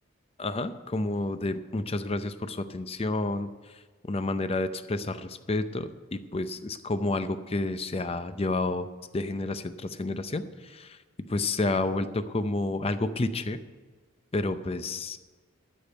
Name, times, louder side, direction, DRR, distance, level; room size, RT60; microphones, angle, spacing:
voice 1, 0.4-8.9 9.1-11.0 11.3-13.6 14.3-15.2, left 2 dB, 30° left, 11 dB, 0.5 m, -30 dB
13.0 x 5.2 x 8.9 m, 1.4 s
head